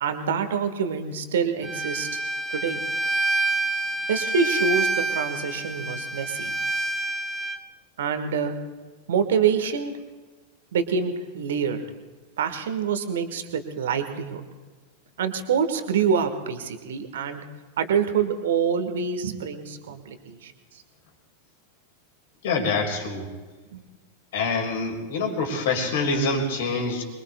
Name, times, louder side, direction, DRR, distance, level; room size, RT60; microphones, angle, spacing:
voice 1, 0.0-2.2 2.5-2.8 4.1-6.5 8.0-8.5 9.1-9.9 10.7-11.8 12.4-14.4 15.2-17.4 17.8-20.5 23.7-23.8, right 6 dB, 60° right, 8 dB, 1.5 m, -26 dB
Bowed string instrument, 1.6-7.6, right 2 dB, 15° right, 0.8 m, -27 dB
voice 2, 22.4-23.3 24.3-27.0, left 3 dB, 55° left, 2 dB, 3.3 m, -25 dB
26.0 x 22.0 x 2.3 m, 1.3 s
figure-of-eight pair, 90°, 0 cm